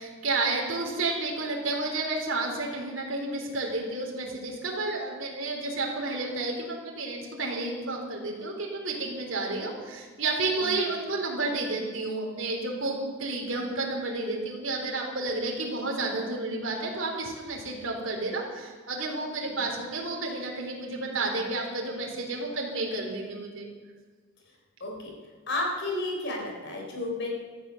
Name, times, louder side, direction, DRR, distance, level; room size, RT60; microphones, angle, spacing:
voice 1, 0.0-23.7, right 2 dB, 65° right, -1 dB, 3.5 m, -31 dB
voice 2, 24.8-25.1 25.5-27.3, left 2 dB, 60° left, 0 dB, 4.3 m, -32 dB
15.0 x 13.5 x 6.5 m, 1.4 s
head